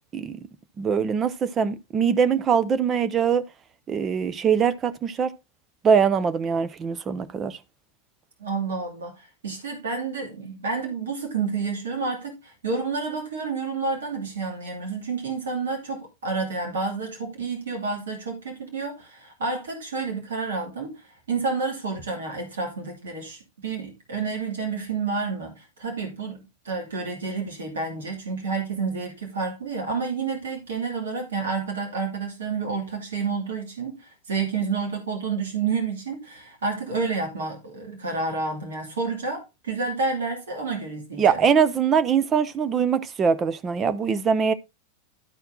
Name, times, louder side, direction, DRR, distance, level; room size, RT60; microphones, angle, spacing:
voice 1, 0.8-3.4 3.9-5.3 5.8-7.6 41.2-44.5, right 6 dB, 25° right, 0.8 m, -22 dB
voice 2, 8.4-41.4, right 4 dB, 65° right, 2.6 m, -30 dB
12.0 x 4.5 x 3.8 m
figure-of-eight pair, 90°, 0 cm